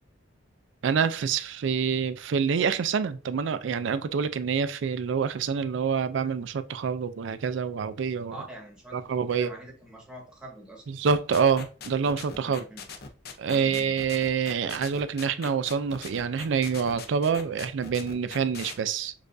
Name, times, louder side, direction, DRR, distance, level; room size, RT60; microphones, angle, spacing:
voice 1, 0.8-8.5 8.9-9.5 10.9-12.6 13.4-19.1, right 6 dB, 65° right, 0.4 m, -27 dB
voice 2, 8.3-10.9 12.4-12.8, right 1 dB, 5° right, 1.1 m, -45 dB
sound 1, 11.1-18.7, left 5 dB, 55° left, 0.6 m, -41 dB
6.4 x 2.5 x 2.6 m
head